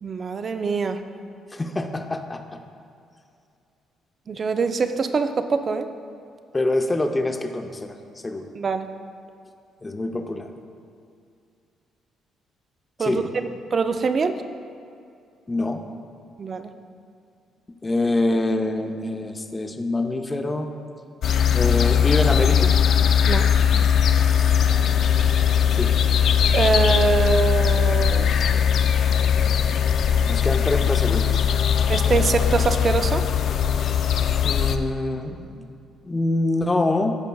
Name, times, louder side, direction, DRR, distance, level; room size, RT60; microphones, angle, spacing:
voice 1, 0.0-1.0 4.3-5.9 8.6-8.9 13.0-14.4 16.4-16.7 23.3-23.5 26.5-28.3 31.9-33.2, right 4 dB, 40° right, 8 dB, 0.4 m, -23 dB
voice 2, 1.5-2.6 6.5-8.0 8.2-8.5 9.8-10.5 13.0-13.3 15.5-15.8 17.8-20.7 21.5-22.8 24.2-24.6 25.8-26.0 30.3-31.5 34.4-35.7 36.0-37.2, left 2 dB, 20° left, 5 dB, 0.6 m, -25 dB
sound 1, 21.2-34.8, left 8 dB, 65° left, 0.3 m, -20 dB
15.0 x 5.1 x 2.3 m, 2.4 s
cardioid pair, 90°, 0 cm